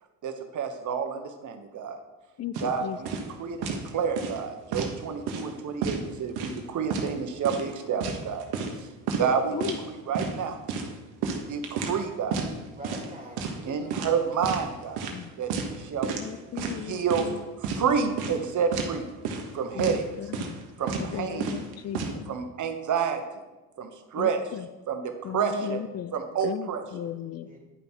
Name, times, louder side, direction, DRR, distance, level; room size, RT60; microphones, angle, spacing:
voice 1, 0.2-2.0 2.6-8.4 8.8-8.9 9.2-10.6 11.2-12.4 13.6-15.1 15.4-16.1 16.5-17.3 17.6-19.1 19.5-20.0 20.8-21.6 22.3-23.4 23.8-24.4 24.9-25.8 26.1-27.1, right 6 dB, 50° right, 6 dB, 1.3 m, -29 dB
voice 2, 2.4-3.0 9.5-9.8 15.1-15.3 16.1-17.4 17.7-17.8 19.7-20.6 21.0-22.3 24.1-24.7 25.2-26.1 26.4-27.5, left 10 dB, 40° left, 14 dB, 0.6 m, -36 dB
sound 1, 2.5-2.7 3.1-3.3 3.6-3.9 4.2-4.9 5.3-5.5 5.8-6.6 6.9-7.1 7.4-8.8 9.1-9.3 9.6-9.8 10.1-10.4 10.7-12.0 12.3-12.5 12.8-13.1 13.4-13.6 13.9-14.6 15.0-15.2 15.5-15.8 16.0-16.3 16.6-17.3 17.6-17.8 18.2-18.4 18.7-18.9 19.2-19.5 19.8-20.0 20.3-20.6 20.9-21.1 21.4-22.1, right 5 dB, 75° right, 1.3 m, -31 dB
voice 3, 12.6-14.2 27.4-27.6, equal, 20° right, -1 dB, 2.9 m, -44 dB
9.9 x 5.5 x 4.6 m, 1.1 s
supercardioid pair, 75°, 38 cm